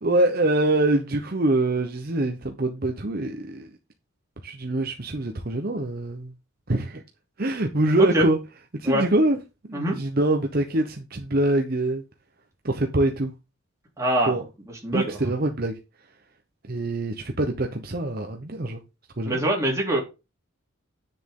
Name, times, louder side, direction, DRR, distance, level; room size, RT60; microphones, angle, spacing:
voice 1, 0.0-3.7 4.4-6.3 6.7-7.0 7.4-8.4 8.7-9.4 9.6-12.0 12.6-13.3 14.2-14.4 14.9-15.7 16.7-18.8 19.2-19.4, right 2 dB, 45° right, 1.0 m, -24 dB
voice 2, 14.0-14.4 14.8-15.2 19.3-20.0, right 1 dB, 15° right, 3.3 m, -23 dB
9.7 x 6.8 x 3.8 m
head